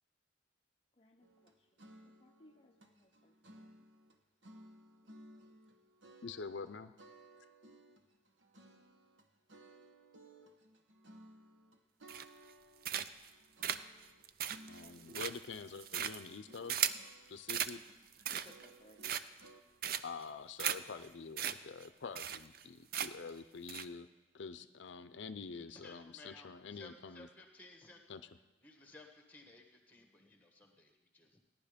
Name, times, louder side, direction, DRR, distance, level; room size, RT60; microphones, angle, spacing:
voice 1, 1.0-1.8 2.2-3.7 18.4-19.0, left 1 dB, 30° left, 2 dB, 0.6 m, -65 dB
sound 1, 1.2-4.2 4.4-6.7 7.0-19.6, right 1 dB, 75° right, 1.2 m, -59 dB
voice 2, 6.2-6.9 14.7-17.0 17.3-17.8 20.0-24.1 24.3-27.3 28.1-28.2, left 5 dB, 70° left, 11 dB, 0.6 m, -46 dB
Hoe-work, 12.1-12.5 12.8-13.3 13.6-17.1 17.5-17.7 18.1-18.7 19.0-19.5 19.8-20.2 20.6-20.8 21.0-21.1 21.4-21.5 21.8-21.9 22.1-22.6 22.9-23.3 23.7-23.8, right 9 dB, 50° right, 0.5 m, -37 dB
voice 3, 25.7-28.2 28.6-31.4, left 2 dB, 10° left, 4 dB, 1.4 m, -58 dB
16.5 x 11.0 x 5.1 m, 1.1 s
head